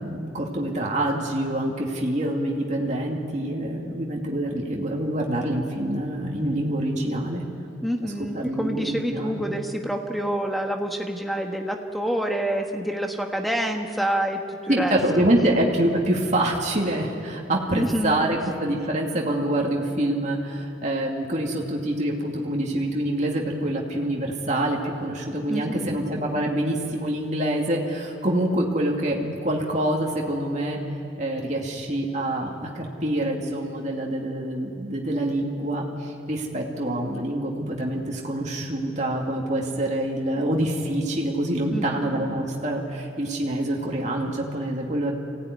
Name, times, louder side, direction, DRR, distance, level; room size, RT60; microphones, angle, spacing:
voice 1, 0.0-7.4 8.0-9.4 14.7-30.8 31.2-45.2, right 1 dB, 35° right, -1 dB, 2.4 m, -26 dB
voice 2, 7.8-14.9 17.7-18.2 25.5-26.0 41.7-42.2, equal, ahead, 3 dB, 1.4 m, -27 dB
25.0 x 16.5 x 9.7 m, 2.7 s
head